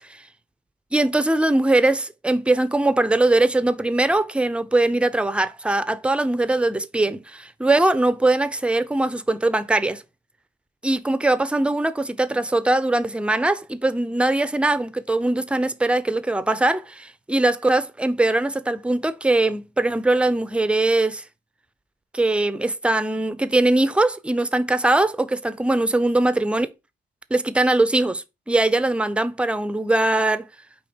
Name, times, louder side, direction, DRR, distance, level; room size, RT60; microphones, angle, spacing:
voice 1, 0.9-10.0 10.8-21.2 22.1-26.7 27.3-30.5, right 2 dB, 5° right, 0.4 m, -21 dB
4.2 x 2.8 x 4.3 m
cardioid pair, 90°, 20 cm